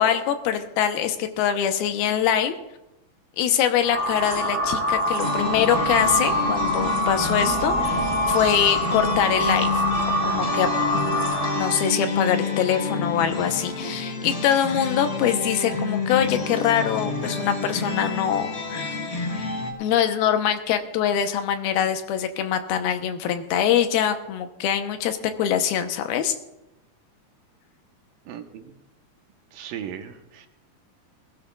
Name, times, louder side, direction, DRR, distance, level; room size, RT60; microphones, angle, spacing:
voice 1, 0.0-2.5 3.4-9.8 10.2-10.7 10.9-11.2 11.6-18.9 19.8-26.4, left 9 dB, 85° left, 7 dB, 2.8 m, -24 dB
sound 1, 3.8-11.8, equal, 15° right, 3.1 m, -25 dB
Back Home, 5.2-19.7, left 3 dB, 40° left, 1.5 m, -29 dB
voice 2, 28.3-28.7 29.5-30.5, right 9 dB, 75° right, 5 dB, 2.6 m, -37 dB
20.0 x 15.5 x 2.4 m, 0.93 s
omnidirectional pair, 4.3 m